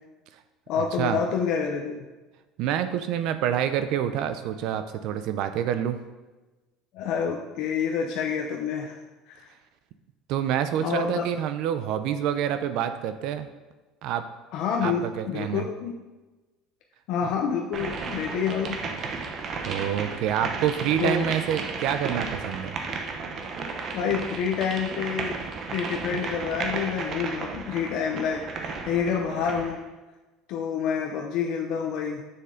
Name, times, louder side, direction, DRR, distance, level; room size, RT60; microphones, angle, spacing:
voice 1, 0.7-2.1 6.9-9.0 9.3-9.5 10.8-11.3 14.5-16.0 17.1-18.8 21.0-21.4 23.9-25.4 25.7-29.8 30.5-32.2, left 6 dB, 65° left, 1 dB, 0.7 m, -28 dB
voice 2, 2.6-6.0 10.3-13.5 14.0-14.2 14.8-15.6 19.7-22.7, right 10 dB, 60° right, 10 dB, 0.5 m, -27 dB
sound 1, 17.7-29.8, right 4 dB, 40° right, 0.8 m, -34 dB
7.0 x 6.6 x 3.8 m, 1.2 s
cardioid pair, 135°, 0 cm